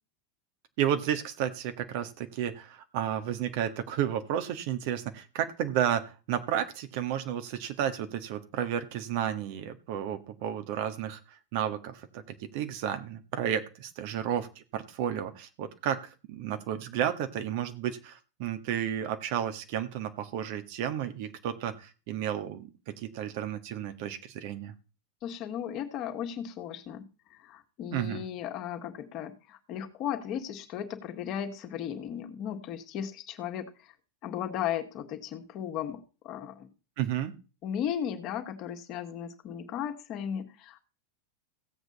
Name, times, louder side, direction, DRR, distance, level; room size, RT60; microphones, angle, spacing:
voice 1, 0.8-11.2 11.5-24.7 27.9-28.2 37.0-37.3, right 10 dB, 55° right, 8 dB, 1.6 m, -32 dB
voice 2, 25.2-33.9 34.2-36.7 37.6-40.9, left 9 dB, 45° left, 6 dB, 2.0 m, -36 dB
16.5 x 8.1 x 4.1 m, 0.33 s
figure-of-eight pair, 90°, 0 cm